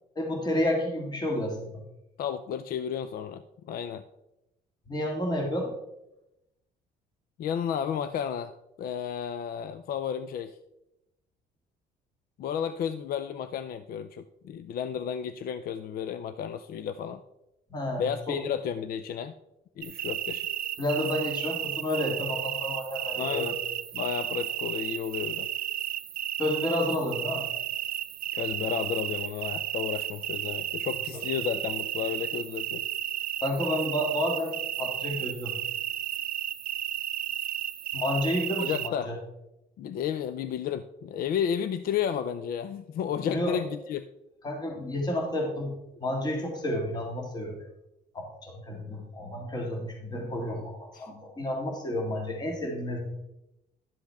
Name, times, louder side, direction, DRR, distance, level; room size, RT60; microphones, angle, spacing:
voice 1, 0.2-1.7 4.9-5.7 17.7-18.4 20.8-23.5 26.4-27.5 31.1-31.2 33.4-35.6 37.9-39.2 43.3-43.5 44.4-47.6 48.1-53.0, left 1 dB, 25° left, 1 dB, 2.1 m, -30 dB
voice 2, 2.2-3.4 3.7-4.0 7.4-10.6 12.4-17.2 18.0-19.3 19.8-20.5 23.2-23.6 23.9-25.5 28.3-32.8 38.6-39.1 39.8-44.1 50.9-51.1, left 8 dB, 60° left, 12 dB, 0.5 m, -32 dB
sound 1, 19.8-38.9, right 12 dB, 60° right, 0.6 m, -33 dB
11.5 x 7.4 x 3.5 m, 0.88 s
cardioid pair, 110°, 17 cm